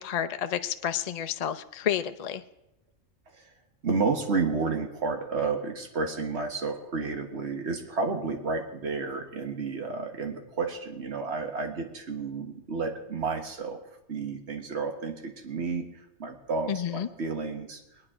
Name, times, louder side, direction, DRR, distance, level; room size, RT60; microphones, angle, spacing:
voice 1, 0.0-2.4 16.7-17.1, left 9 dB, 50° left, 9 dB, 0.4 m, -30 dB
voice 2, 3.8-13.8 14.1-15.9 16.2-17.8, right 4 dB, 60° right, 4 dB, 1.7 m, -31 dB
21.5 x 9.7 x 4.9 m, 0.91 s
omnidirectional pair, 1.3 m